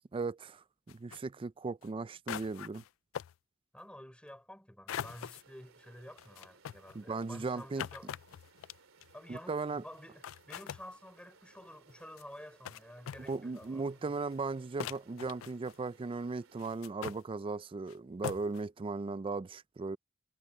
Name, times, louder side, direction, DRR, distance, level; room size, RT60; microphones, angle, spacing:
voice 1, 0.1-2.8 6.9-7.9 9.3-9.8 13.3-20.0, right 3 dB, 25° right, 0.3 m, -37 dB
sound 1, 0.9-1.2 1.8-1.9 2.3-2.9 3.1-3.3 4.9-5.4 6.2-9.1 9.9-10.0 10.2-10.8 11.9-12.2 12.7-12.8 13.1-13.7 14.3-14.4 14.8-15.9 16.6-17.2 17.9-18.0 18.2-18.6, left 9 dB, 75° left, 0.3 m, -42 dB
voice 2, 3.7-8.1 9.1-14.1, left 1 dB, 5° left, 5.5 m, -51 dB
sound 2, 4.9-16.7, right 4 dB, 90° right, 3.0 m, -63 dB
head